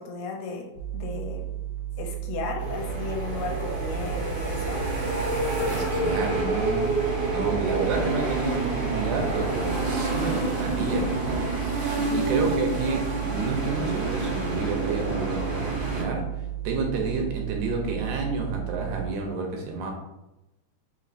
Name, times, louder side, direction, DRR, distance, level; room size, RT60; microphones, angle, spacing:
voice 1, 0.0-1.5 2.0-4.9 11.9-12.5, left 4 dB, 80° left, 2 dB, 1.9 m, -35 dB
sound 1, 0.7-19.1, right 13 dB, 50° left, 0.9 m, -34 dB
sound 2, 2.6-16.0, right 2 dB, 55° right, 1.1 m, -28 dB
voice 2, 5.7-6.9 7.3-11.5 11.8-16.3 16.6-19.9, right 3 dB, 85° right, 2 dB, 2.1 m, -30 dB
5.1 x 2.9 x 2.5 m, 0.93 s
omnidirectional pair, 3.4 m